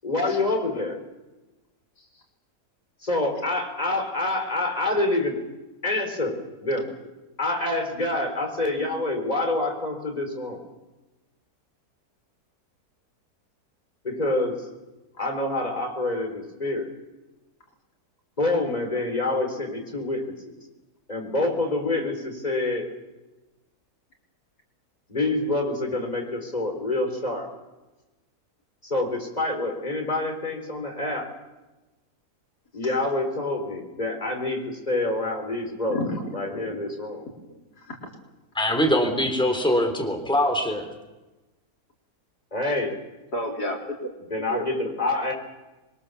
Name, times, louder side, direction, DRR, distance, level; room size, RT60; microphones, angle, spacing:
voice 1, 0.0-1.0 3.0-5.4 5.8-6.9 7.4-10.6 14.0-14.6 15.2-16.9 18.4-20.3 21.1-22.9 25.1-27.5 28.8-31.3 32.7-36.0 36.3-37.2 42.5-42.9 44.3-45.3, left 2 dB, 25° left, 3 dB, 4.5 m, -27 dB
voice 2, 35.9-36.3 37.4-38.0 43.3-44.1 44.4-44.6, left 1 dB, 80° left, 0 dB, 4.4 m, -31 dB
voice 3, 38.5-40.9, equal, 5° left, 4 dB, 3.4 m, -23 dB
26.0 x 22.5 x 7.1 m, 1.1 s
omnidirectional pair, 1.7 m